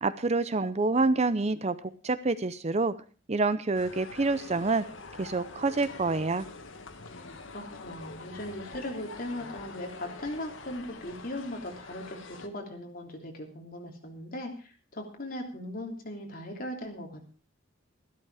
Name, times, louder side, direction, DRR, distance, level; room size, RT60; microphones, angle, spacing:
voice 1, 0.0-2.9 3.3-4.8 5.2-6.4, right 3 dB, 35° right, 14 dB, 0.6 m, -27 dB
sound 1, 3.7-12.5, left 3 dB, 90° left, 1.6 m, -45 dB
voice 2, 7.5-12.2 12.4-17.3, left 1 dB, 50° left, 2 dB, 3.2 m, -39 dB
14.0 x 12.0 x 4.9 m, 0.38 s
head